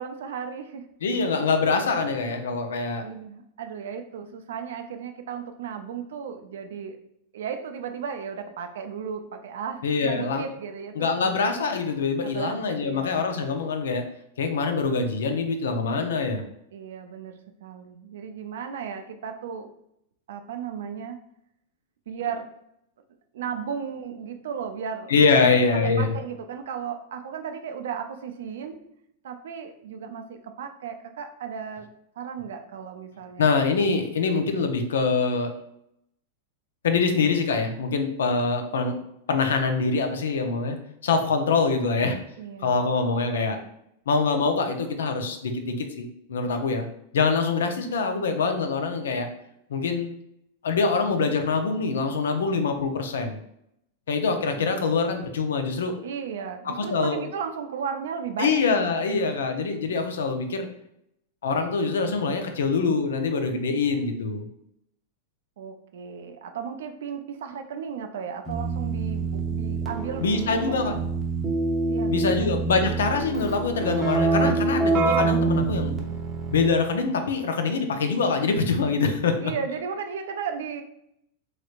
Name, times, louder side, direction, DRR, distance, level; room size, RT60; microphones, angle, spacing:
voice 1, 0.0-0.9 3.0-7.0 7.3-11.3 12.2-13.1 16.7-19.7 20.3-21.2 22.1-22.5 23.3-28.9 29.2-31.9 32.2-33.4 42.4-42.8 54.6-54.9 56.0-58.8 65.6-71.0 71.9-72.5 79.4-80.8, right 7 dB, 75° right, 6 dB, 0.3 m, -35 dB
voice 2, 1.0-3.0 9.8-10.4 11.0-14.0 14.4-16.4 25.1-26.1 33.4-35.5 36.8-39.0 39.3-40.8 41.0-42.2 42.6-43.6 44.1-46.9 47.1-49.3 49.7-50.1 50.6-53.4 54.1-55.9 56.6-57.2 58.4-60.7 61.4-64.4 70.2-70.9 72.1-75.9 76.5-79.5, left 4 dB, 80° left, 6 dB, 0.5 m, -24 dB
Keyboard (musical), 68.5-76.9, right 3 dB, 20° right, 0.7 m, -26 dB
3.1 x 3.0 x 2.4 m, 0.77 s
hypercardioid pair, 105°, 0 cm